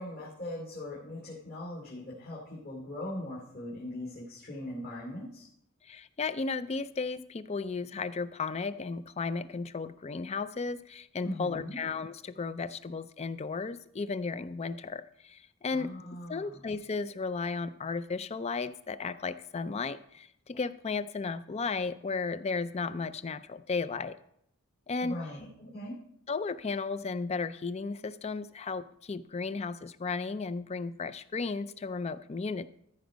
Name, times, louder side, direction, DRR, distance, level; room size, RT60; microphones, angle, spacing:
voice 1, 0.0-5.5 11.2-11.8 15.7-16.6 25.0-25.9, left 1 dB, 50° left, -5 dB, 2.8 m, -40 dB
voice 2, 5.8-15.9 16.3-24.2 24.9-25.2 26.3-32.7, left 4 dB, 30° left, 14 dB, 0.4 m, -34 dB
14.0 x 5.2 x 5.1 m, 0.72 s
head